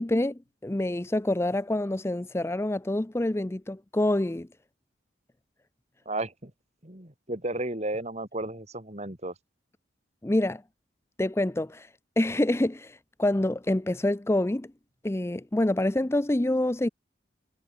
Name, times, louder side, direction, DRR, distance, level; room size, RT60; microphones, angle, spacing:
voice 1, 0.0-4.5 10.2-10.6 11.2-11.9 12.2-14.7 15.0-16.9, left 1 dB, 15° left, 0.5 m, -26 dB
voice 2, 6.0-6.5 6.8-9.3, right 2 dB, 35° right, 3.4 m, -33 dB
head